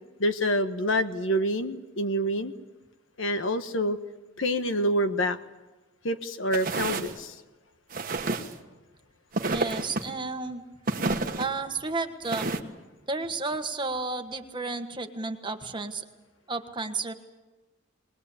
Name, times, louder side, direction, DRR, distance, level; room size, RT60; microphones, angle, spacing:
voice 1, 0.2-2.5 3.2-4.0 4.4-5.4 6.0-7.4, equal, 65° left, 9 dB, 1.3 m, -27 dB
sound 1, 6.5-7.1 7.9-8.6 9.3-10.1 10.9-11.5 12.2-12.6, right 3 dB, 45° right, 1.4 m, -29 dB
voice 2, 9.5-10.6 11.4-12.8 13.1-16.0 16.5-17.1, right 3 dB, 25° right, 6 dB, 1.4 m, -32 dB
21.0 x 21.0 x 8.4 m, 1.1 s
head